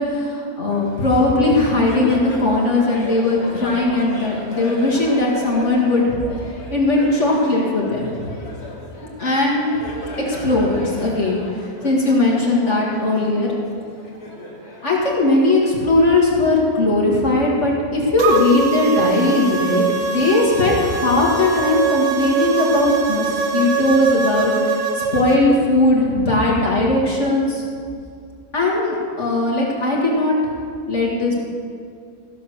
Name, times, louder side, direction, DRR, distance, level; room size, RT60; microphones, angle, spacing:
voice 1, 0.0-6.1 6.7-8.1 9.2-9.7 10.3-11.4 11.8-13.5 14.8-27.6 28.5-30.4 30.8-31.3, left 2 dB, 50° left, -3 dB, 2.3 m, -18 dB
Laughter, 0.7-15.7, left 2 dB, 75° left, 2.4 m, -36 dB
sound 1, 18.2-25.4, right 5 dB, 60° right, 1.4 m, -22 dB
15.0 x 7.1 x 6.4 m, 2.3 s
omnidirectional pair, 1.6 m